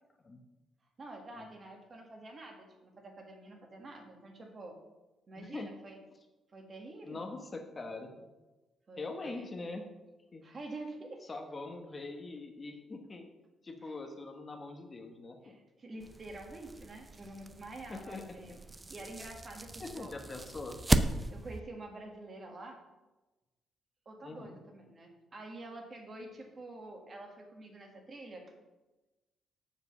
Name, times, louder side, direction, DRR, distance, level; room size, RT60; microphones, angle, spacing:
voice 1, 1.0-4.8 5.3-6.0 6.5-7.3 8.9-9.5 10.4-11.2 13.8-13.9 15.4-18.6 18.9-20.1 21.3-22.8 24.1-28.5, right 2 dB, 40° right, 2 dB, 1.7 m, -47 dB
voice 2, 5.4-5.7 7.0-8.1 9.0-9.9 10.3-10.4 11.3-13.3 13.6-15.6 17.9-18.2 19.8-20.8 24.2-24.6, left 3 dB, 30° left, 4 dB, 1.1 m, -43 dB
sound 1, 16.0-21.6, right 2 dB, 20° right, 0.5 m, -35 dB
7.2 x 4.8 x 6.9 m, 1.1 s
cardioid pair, 90°, 0 cm